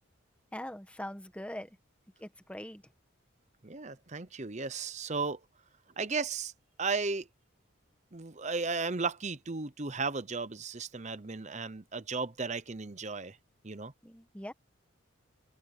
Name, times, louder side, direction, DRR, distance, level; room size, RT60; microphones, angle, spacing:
voice 1, 0.5-1.8 2.2-2.9 14.0-14.5, left 1 dB, 5° left, 1.4 m, -42 dB
voice 2, 3.6-5.4 6.0-6.5 6.8-7.3 8.1-13.4 13.6-13.9, right 4 dB, 35° right, 0.9 m, -35 dB
open air
head